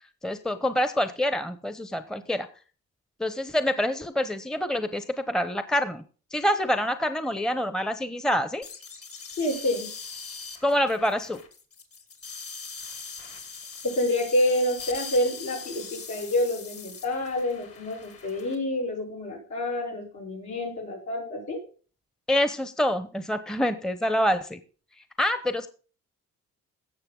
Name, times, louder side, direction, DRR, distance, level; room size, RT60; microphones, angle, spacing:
voice 1, 0.2-2.5 3.2-6.0 6.3-8.7 10.6-11.4 22.3-24.6 25.2-25.7, equal, ahead, 11 dB, 0.9 m, -26 dB
sound 1, 8.6-18.5, left 5 dB, 50° left, 2.8 m, -41 dB
voice 2, 9.4-9.9 13.8-21.6, left 1 dB, 70° left, -1 dB, 7.0 m, -28 dB
16.5 x 6.9 x 3.9 m, 0.38 s
cardioid pair, 90°, 30 cm